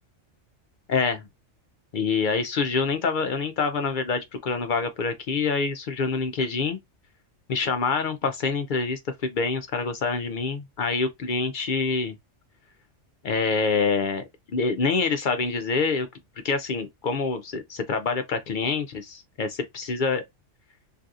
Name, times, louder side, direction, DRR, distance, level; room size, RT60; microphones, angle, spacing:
voice 1, 0.9-1.3 1.9-6.8 7.5-12.1 13.2-14.2 14.5-16.1 16.4-20.2, left 4 dB, 60° left, 0.5 m, -26 dB
3.2 x 2.7 x 2.4 m
omnidirectional pair, 1.3 m